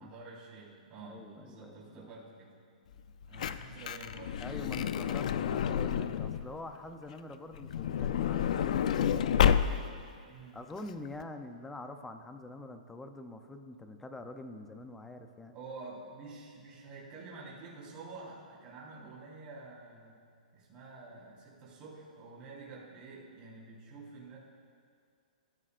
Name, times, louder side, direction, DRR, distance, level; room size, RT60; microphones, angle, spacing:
voice 1, 0.0-2.6 3.3-4.5 5.3-5.4 6.0-6.2 10.3-10.6 15.5-20.2 20.5-24.4, right 3 dB, 20° right, -6 dB, 4.2 m, -49 dB
voice 2, 1.0-2.1 4.4-9.5 10.5-15.6, left 2 dB, 5° left, 6 dB, 0.6 m, -45 dB
Truck / Door, 3.0-6.5 7.5-10.1 10.8-10.9 11.1-11.2, left 8 dB, 55° left, 0.5 m, -30 dB
25.5 x 14.0 x 2.5 m, 2.2 s
hypercardioid pair, 165°, 5 cm